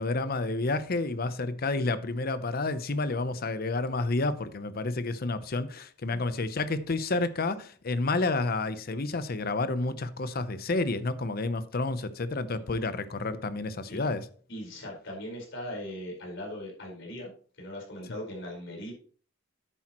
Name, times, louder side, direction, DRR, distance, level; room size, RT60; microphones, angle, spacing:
voice 1, 0.0-14.3, left 3 dB, 50° left, 0.7 m, -30 dB
voice 2, 14.5-17.3 17.6-18.9, left 1 dB, 65° left, 4.6 m, -39 dB
10.0 x 8.7 x 3.0 m
head